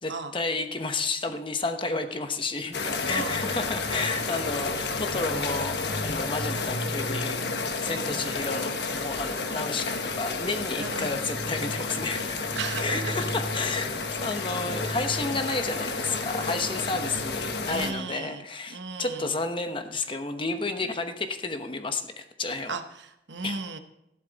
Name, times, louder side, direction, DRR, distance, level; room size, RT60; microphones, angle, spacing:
voice 1, 0.0-7.5 7.8-22.8 23.4-23.6, left 3 dB, 30° left, 7 dB, 0.9 m, -31 dB
sound 1, 2.7-17.9, left 3 dB, 70° left, 1.3 m, -31 dB
voice 2, 3.1-3.4 8.1-8.3 10.8-11.2 12.6-13.1 17.7-18.4 18.7-19.3 22.7-23.8, right 4 dB, 85° right, 8 dB, 1.1 m, -35 dB
14.0 x 11.5 x 4.0 m, 0.83 s
head